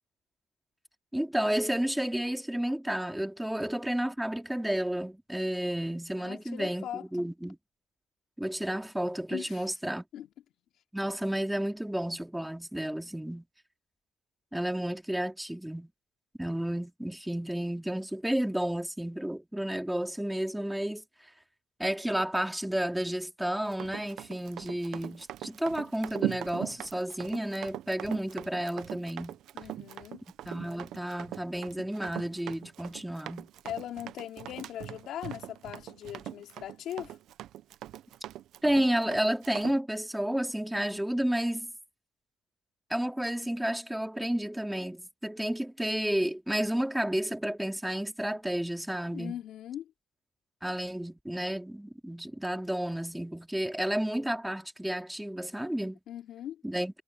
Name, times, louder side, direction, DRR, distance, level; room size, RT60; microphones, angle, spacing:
voice 1, 1.1-7.6 8.4-10.0 10.9-13.5 14.5-15.9 16.4-21.0 21.8-29.4 30.5-33.5 38.6-41.7 42.9-49.4 50.6-56.0 56.6-57.0, right 1 dB, 5° right, 2.6 m, -31 dB
voice 2, 6.2-7.2 9.3-9.7 10.1-10.3 29.5-30.2 33.6-37.2 49.1-49.9 56.1-56.6, left 11 dB, 75° left, 2.8 m, -40 dB
Run, 23.7-39.8, right 13 dB, 80° right, 0.7 m, -41 dB
cardioid pair, 145°, 0 cm